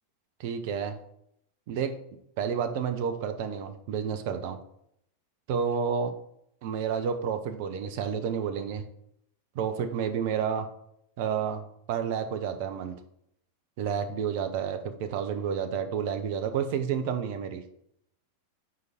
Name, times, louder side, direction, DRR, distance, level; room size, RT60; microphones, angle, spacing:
voice 1, 0.4-1.0 1.7-2.0 2.4-4.6 5.5-6.1 6.6-8.8 9.5-10.7 11.2-11.6 11.9-12.9 13.8-17.6, right 7 dB, 50° right, 8 dB, 0.6 m, -30 dB
4.7 x 4.7 x 4.9 m, 0.73 s
figure-of-eight pair, 90°, 0 cm